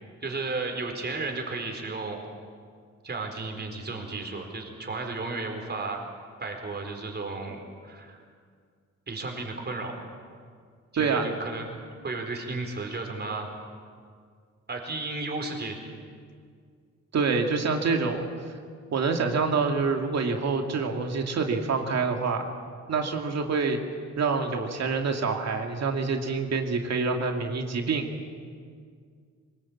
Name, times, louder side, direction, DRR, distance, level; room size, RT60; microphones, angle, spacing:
voice 1, 0.2-2.2 3.0-6.0 6.4-8.2 9.1-10.1 11.0-11.7 12.0-13.5 14.7-15.8, right 3 dB, 35° right, 3 dB, 4.4 m, -33 dB
voice 2, 11.0-11.3 17.1-18.3 18.9-22.4 22.9-23.8 24.2-28.1, right 4 dB, 60° right, 3 dB, 2.5 m, -26 dB
23.0 x 20.5 x 8.7 m, 2.1 s
cardioid pair, 110°, 30 cm